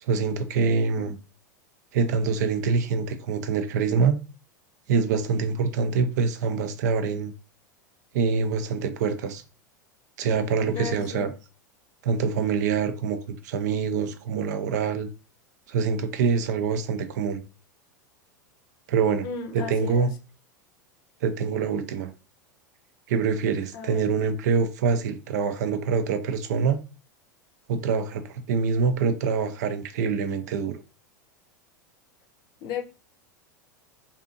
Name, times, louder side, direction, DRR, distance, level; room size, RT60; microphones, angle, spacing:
voice 1, 0.0-1.2 1.9-4.2 4.9-7.3 8.1-9.4 10.2-11.3 12.0-13.2 13.4-15.1 15.7-17.4 18.9-19.3 19.5-20.1 21.2-22.1 23.1-26.8 27.7-30.8, right 5 dB, 65° right, 0.4 m, -25 dB
voice 2, 10.7-11.3 19.2-20.1 23.7-24.0 32.6-32.8, left 6 dB, 45° left, 0.6 m, -34 dB
2.6 x 2.5 x 2.5 m
hypercardioid pair, 90°, 10 cm